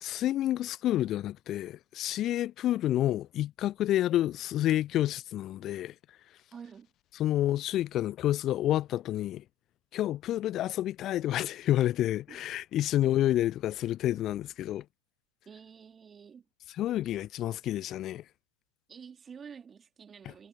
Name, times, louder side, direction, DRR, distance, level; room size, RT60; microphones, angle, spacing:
voice 1, 0.0-5.9 7.2-9.4 9.9-14.8 16.8-18.2, left 13 dB, 30° left, 0.7 m, -29 dB
voice 2, 6.5-6.9 12.3-12.5 15.4-16.4 18.9-20.5, right 6 dB, 20° right, 3.1 m, -49 dB
figure-of-eight pair, 90°, 0 cm